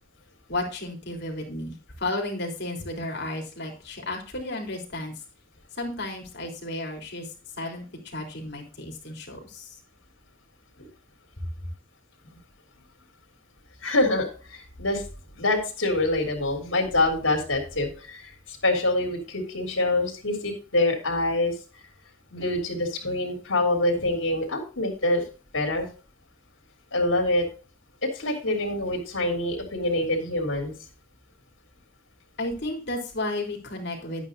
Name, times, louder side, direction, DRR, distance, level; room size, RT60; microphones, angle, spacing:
voice 1, 0.5-5.1 5.8-7.3 7.6-9.7 32.4-34.3, left 2 dB, 60° left, 1 dB, 3.5 m, -33 dB
voice 2, 13.8-15.0 15.4-21.5 22.3-25.2 25.5-25.9 26.9-27.4 28.0-30.7, left 2 dB, 85° left, 1 dB, 3.6 m, -25 dB
11.5 x 9.2 x 2.7 m, 0.36 s
head